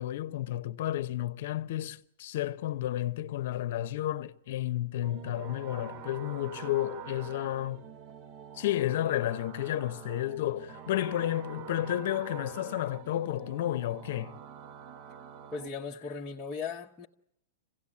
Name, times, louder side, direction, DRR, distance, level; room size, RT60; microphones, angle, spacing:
voice 1, 0.0-7.8 8.5-14.4, left 13 dB, 55° left, 0.8 m, -32 dB
sound 1, 5.0-15.7, right 8 dB, 35° right, 0.8 m, -46 dB
voice 2, 15.5-17.1, left 5 dB, 10° left, 1.0 m, -37 dB
26.5 x 17.0 x 8.5 m
hypercardioid pair, 160°, 0 cm